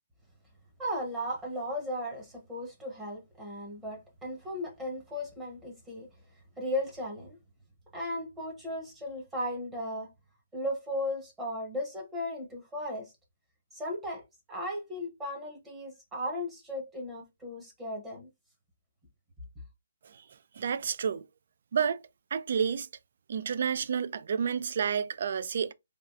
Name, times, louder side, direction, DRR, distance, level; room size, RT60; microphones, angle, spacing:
voice 1, 0.8-6.1 6.6-7.4 7.9-10.1 10.5-13.1 13.7-14.2 14.5-18.3, left 1 dB, 10° right, 0.9 m, -36 dB
voice 2, 20.6-21.3 21.7-22.0 22.3-22.9 23.3-25.7, right 7 dB, 55° right, 0.3 m, -30 dB
3.3 x 2.4 x 2.5 m
hypercardioid pair, 160°, 0 cm